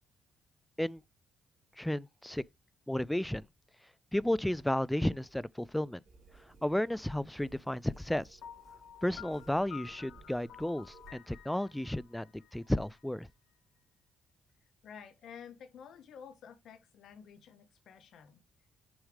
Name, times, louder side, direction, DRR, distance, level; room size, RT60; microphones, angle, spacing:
voice 1, 1.8-2.4 2.9-3.4 4.1-6.0 6.6-8.2 9.0-10.9 11.1-13.3, left 1 dB, 5° left, 0.3 m, -33 dB
sound 1, 6.0-11.1, right 4 dB, 50° right, 2.4 m, -59 dB
Piano, 8.4-13.3, left 9 dB, 85° left, 2.0 m, -52 dB
voice 2, 14.8-18.4, left 7 dB, 70° left, 0.8 m, -51 dB
6.3 x 3.2 x 5.0 m
cardioid pair, 90°, 0 cm